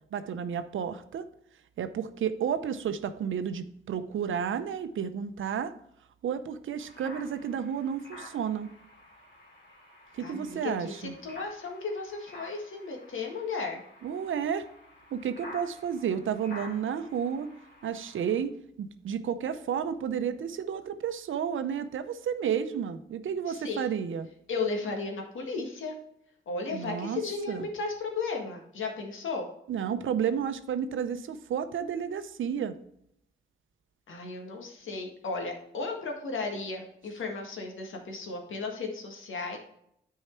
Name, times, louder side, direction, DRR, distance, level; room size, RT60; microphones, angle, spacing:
voice 1, 0.1-1.3 1.8-5.7 6.2-8.7 10.1-11.1 14.0-14.6 15.1-17.5 17.8-24.3 26.7-27.2 27.5-27.7 29.7-32.7, right 8 dB, 75° right, 11 dB, 0.7 m, -31 dB
sound 1, 6.8-18.4, left 1 dB, 60° left, 2.5 m, -50 dB
voice 2, 10.2-13.8 23.5-24.0 24.5-25.9 26.5-29.5 34.1-39.6, left 4 dB, 80° left, 3 dB, 1.7 m, -35 dB
8.9 x 4.7 x 4.4 m, 0.75 s
supercardioid pair, 50°, 20 cm